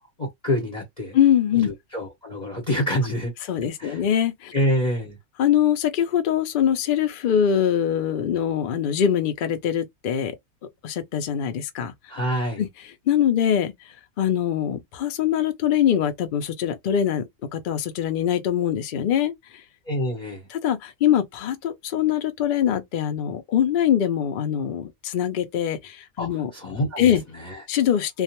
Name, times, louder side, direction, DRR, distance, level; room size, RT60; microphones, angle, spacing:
voice 1, 0.2-1.2 1.6-3.3 3.8-4.0 4.5-5.2 12.1-12.6 19.9-20.5 26.2-27.6, equal, 35° left, 0.9 m, -27 dB
voice 2, 1.1-1.7 3.5-4.5 5.4-10.3 10.8-11.9 12.6-12.7 13.1-13.7 14.2-19.3 20.5-26.5 27.0-27.2 27.7-28.2, left 9 dB, 70° left, 0.4 m, -23 dB
2.4 x 2.2 x 2.8 m
omnidirectional pair, 1.5 m